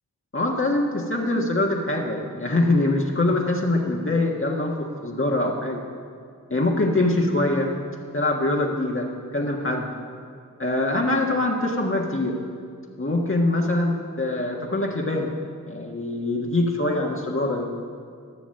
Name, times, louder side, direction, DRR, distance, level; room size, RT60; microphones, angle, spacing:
voice 1, 0.3-5.8 6.5-7.7 8.1-9.9 10.6-12.4 13.0-15.3 15.7-17.7, left 2 dB, 35° left, -1 dB, 1.5 m, -23 dB
14.5 x 6.1 x 8.9 m, 2.2 s
cardioid pair, 45°, 34 cm